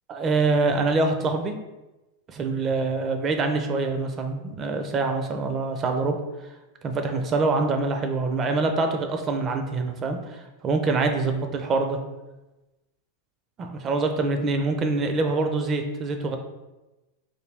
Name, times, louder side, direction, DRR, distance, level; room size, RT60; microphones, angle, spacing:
voice 1, 0.1-1.5 2.3-6.2 6.8-12.0 13.6-16.4, right 3 dB, 30° right, 5 dB, 0.5 m, -25 dB
3.2 x 2.3 x 3.3 m, 1.0 s
hypercardioid pair, 105°, 0 cm